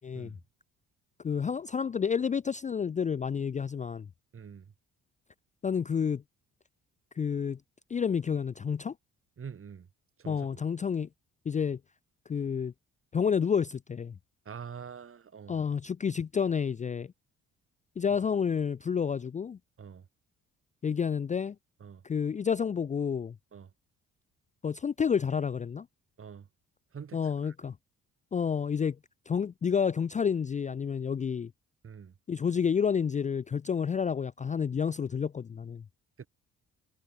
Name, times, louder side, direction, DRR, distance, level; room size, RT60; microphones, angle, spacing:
voice 1, 0.0-0.3 1.2-4.1 5.6-6.2 7.2-7.6 7.9-8.9 10.3-11.1 11.5-11.8 12.3-12.7 13.1-14.1 15.5-17.1 18.0-19.6 20.8-21.6 22.0-23.3 24.6-25.9 27.1-27.7 28.3-29.0 29.3-31.5 32.3-35.8, left 7 dB, 25° left, 0.4 m, -29 dB
voice 2, 4.3-4.7 9.4-9.9 10.2-10.6 14.5-15.6 19.8-20.1 21.8-22.0 23.5-23.7 26.2-26.5 26.9-27.5 31.8-32.1 36.2-36.3, right 7 dB, 45° right, 5.8 m, -45 dB
cardioid pair, 90°, 30 cm